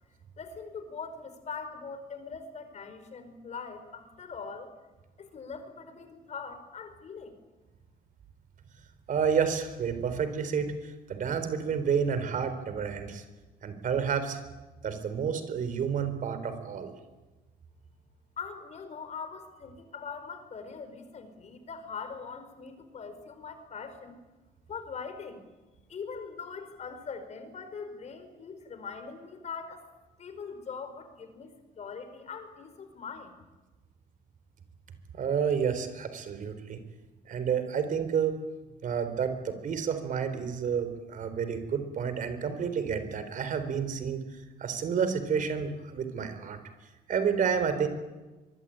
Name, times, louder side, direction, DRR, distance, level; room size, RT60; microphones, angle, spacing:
voice 1, 0.4-4.7 5.2-7.3 18.4-24.2 24.7-25.4 25.9-29.8 30.2-33.4, left 5 dB, 40° left, 9 dB, 4.8 m, -42 dB
voice 2, 9.1-13.2 13.6-14.4 14.8-16.9 35.1-36.8 37.3-38.4 38.8-46.6 47.1-47.9, right 7 dB, 50° right, 10 dB, 4.1 m, -30 dB
24.0 x 23.0 x 9.1 m, 1.2 s
cardioid pair, 110°, 17 cm